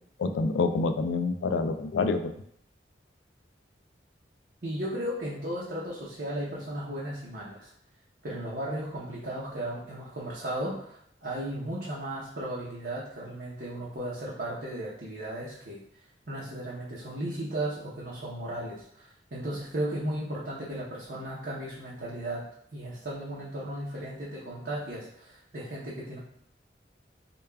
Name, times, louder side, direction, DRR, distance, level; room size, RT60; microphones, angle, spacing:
voice 1, 0.2-2.3, left 3 dB, 85° left, 8 dB, 0.3 m, -27 dB
voice 2, 4.6-7.7 8.2-15.8 16.3-22.4 22.7-26.2, right 1 dB, 60° right, -6 dB, 0.7 m, -35 dB
6.7 x 2.3 x 2.3 m, 0.70 s
head